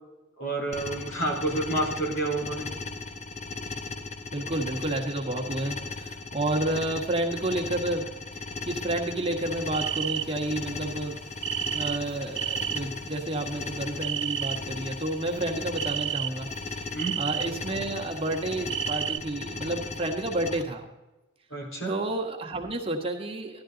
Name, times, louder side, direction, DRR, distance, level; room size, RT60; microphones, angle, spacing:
voice 1, 0.4-2.7 16.9-17.2 21.5-21.9, right 2 dB, 85° left, -1 dB, 4.3 m, -29 dB
sound 1, 0.7-20.6, left 3 dB, 35° left, 0.9 m, -37 dB
voice 2, 4.3-11.2 11.7-20.9 21.9-23.6, right 1 dB, 30° right, 1 dB, 1.6 m, -31 dB
sound 2, 9.7-10.5 11.4-12.8 13.2-14.6 15.2-15.4 15.8-16.5 17.0-17.5 18.2-19.2, right 13 dB, 65° right, 0.4 m, -31 dB
15.5 x 12.0 x 3.9 m, 1.0 s
head